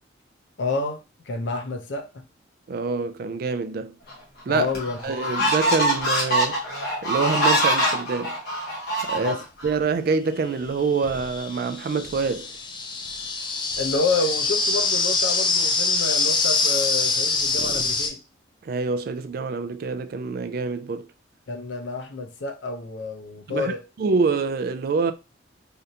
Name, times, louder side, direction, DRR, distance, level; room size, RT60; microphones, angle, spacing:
voice 1, 0.6-2.2 4.5-5.2 9.2-9.4 13.8-18.2 21.5-23.8, left 3 dB, 75° left, 0.6 m, -29 dB
voice 2, 2.7-3.9 4.5-4.7 5.0-6.6 7.0-8.3 9.0-9.4 9.6-12.5 18.6-21.1 23.5-23.7 24.0-25.1, right 4 dB, 50° right, 0.3 m, -26 dB
sound 1, 4.1-4.2 4.7-9.7, right 1 dB, 55° left, 1.3 m, -24 dB
sound 2, 9.6-9.7 10.6-18.1, left 4 dB, 25° left, 0.4 m, -24 dB
3.3 x 2.5 x 2.7 m
head